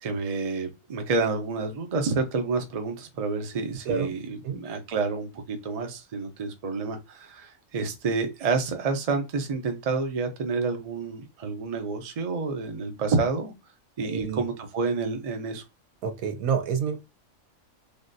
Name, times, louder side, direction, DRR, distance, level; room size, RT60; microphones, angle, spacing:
voice 1, 0.0-13.5 14.0-15.6, right 4 dB, 40° right, 0.5 m, -29 dB
voice 2, 14.0-14.4 16.0-17.0, right 6 dB, 85° right, 1.1 m, -28 dB
3.4 x 2.4 x 2.6 m
omnidirectional pair, 1.4 m